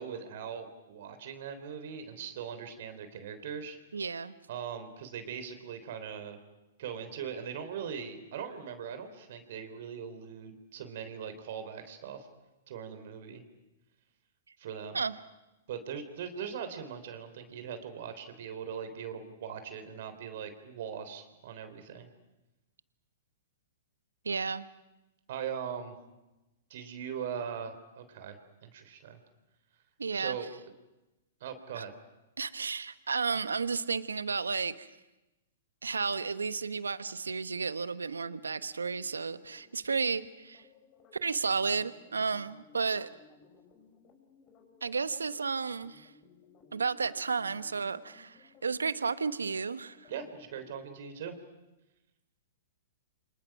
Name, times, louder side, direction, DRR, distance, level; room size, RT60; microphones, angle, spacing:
voice 1, 0.0-3.8 4.5-6.4 6.8-12.3 12.7-13.4 14.6-15.0 15.7-22.1 25.3-26.0 26.7-29.2 30.1-30.5 31.4-31.9 50.1-51.4, right 7 dB, 60° right, 3.5 m, -40 dB
voice 2, 3.9-4.3 14.9-15.1 24.2-24.7 30.0-30.4 31.7-31.8 32.4-34.9 35.8-40.6 41.2-43.1 44.8-46.1 46.7-50.1, right 5 dB, 85° right, 1.1 m, -32 dB
sound 1, 38.8-50.8, left 4 dB, 35° left, 5.7 m, -60 dB
29.5 x 26.0 x 6.1 m
hypercardioid pair, 115°, 0 cm